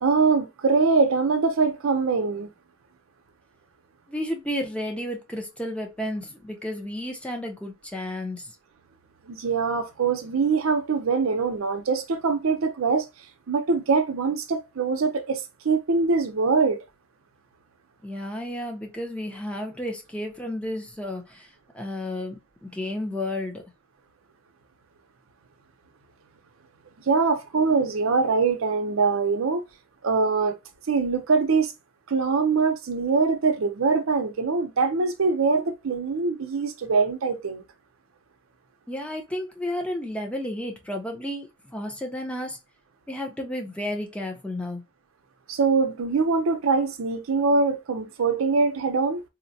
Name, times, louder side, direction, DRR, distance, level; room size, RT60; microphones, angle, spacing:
voice 1, 0.0-2.5 9.3-13.1 13.5-16.8 27.1-29.6 30.0-30.6 30.9-31.7 32.1-37.6 45.5-49.2, right 4 dB, 85° right, 0.6 m, -23 dB
voice 2, 4.1-8.5 18.0-21.5 21.7-23.6 38.9-41.5 41.7-42.6 43.1-44.8, left 1 dB, 5° left, 0.6 m, -32 dB
3.9 x 2.1 x 2.7 m
head